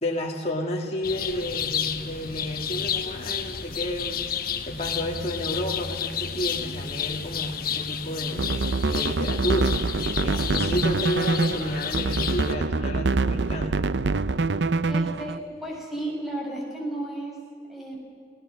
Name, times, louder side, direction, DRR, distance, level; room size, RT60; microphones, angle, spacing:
voice 1, 0.0-4.2 4.7-9.8 10.2-13.7, left 1 dB, 35° left, -1 dB, 2.2 m, -31 dB
sound 1, 1.0-12.6, left 8 dB, 55° left, 1.2 m, -31 dB
sound 2, 8.3-15.4, right 3 dB, 80° right, 0.6 m, -25 dB
voice 2, 14.9-18.0, right 1 dB, ahead, -2 dB, 6.2 m, -34 dB
29.5 x 18.5 x 6.6 m, 2.2 s
head